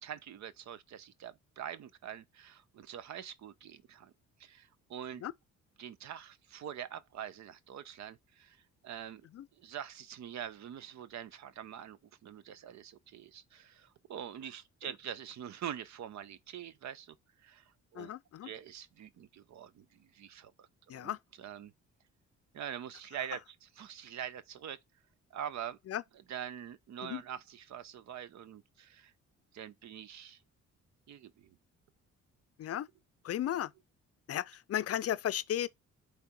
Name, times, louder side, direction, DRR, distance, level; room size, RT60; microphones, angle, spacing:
voice 1, 0.0-4.1 4.4-5.2 5.8-9.3 9.6-18.1 18.4-21.7 22.5-24.8 25.3-25.8 26.3-29.1 29.5-30.4 31.1-31.6, right 9 dB, 65° right, 0.8 m, -45 dB
voice 2, 18.0-18.5 20.9-21.2 25.9-26.0 27.0-27.2 32.6-32.9 33.2-33.7 34.3-35.7, left 11 dB, 50° left, 0.5 m, -35 dB
8.6 x 3.5 x 4.2 m
cardioid pair, 90°, 30 cm